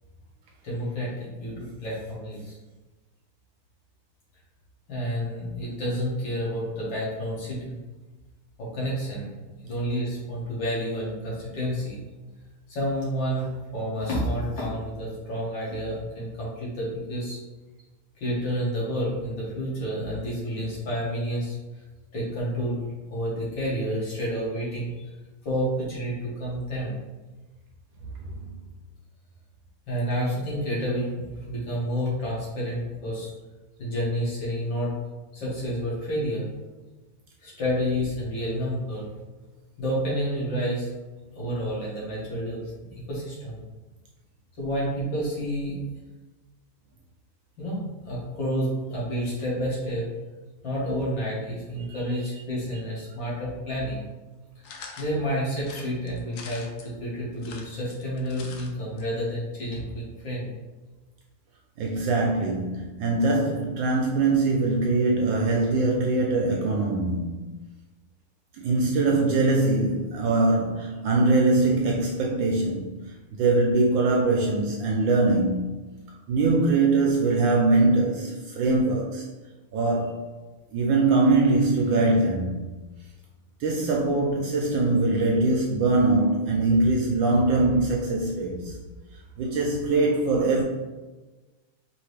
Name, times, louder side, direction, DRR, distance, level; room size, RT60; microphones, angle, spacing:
voice 1, 0.6-2.6 4.9-7.7 8.6-9.3 9.6-12.0 12.7-17.4 18.2-21.6 22.1-22.8 23.1-25.1 25.4-26.9 29.9-33.3 33.8-34.9 35.3-36.5 37.4-39.0 39.8-40.9 41.4-43.6 44.6-45.8 47.6-50.1 50.6-54.0 55.0-60.5, equal, 60° left, -6 dB, 2.1 m, -29 dB
sound 1, 54.6-55.1 55.6-56.9 57.3-58.7 59.0-59.1 59.3-59.4, left 5 dB, 85° left, 0.8 m, -43 dB
voice 2, 61.8-67.5 68.6-73.0 73.3-75.7 76.3-79.3 79.7-80.3 80.7-82.6 83.6-88.8 89.4-90.6, right 2 dB, 75° right, 0 dB, 1.2 m, -22 dB
4.8 x 2.9 x 3.2 m, 1.2 s
omnidirectional pair, 2.4 m